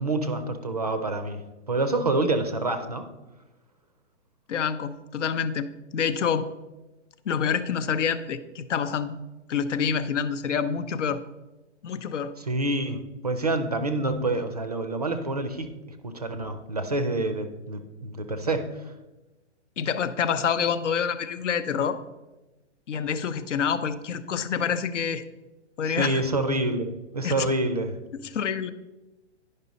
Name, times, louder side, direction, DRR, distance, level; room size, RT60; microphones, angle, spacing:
voice 1, 0.0-1.4 1.7-3.1 12.4-15.7 16.0-18.9 25.9-28.0, right 2 dB, 35° right, 8 dB, 0.4 m, -27 dB
voice 2, 4.5-6.5 7.2-9.2 9.5-11.2 11.8-12.3 19.8-22.0 22.9-25.2 25.8-26.2 27.2-27.5 28.2-28.7, left 7 dB, 85° left, 12 dB, 0.7 m, -27 dB
10.5 x 5.4 x 4.0 m, 1.1 s
hypercardioid pair, 180°, 36 cm